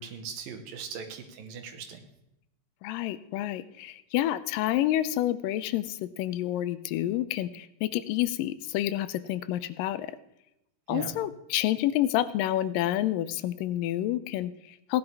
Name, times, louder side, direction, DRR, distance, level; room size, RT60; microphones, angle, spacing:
voice 1, 0.0-2.0 10.9-11.1, right 7 dB, 85° right, 6 dB, 2.9 m, -39 dB
voice 2, 2.8-10.2 10.9-15.0, left 13 dB, 85° left, 14 dB, 2.2 m, -29 dB
17.0 x 10.5 x 3.4 m, 0.85 s
omnidirectional pair, 3.9 m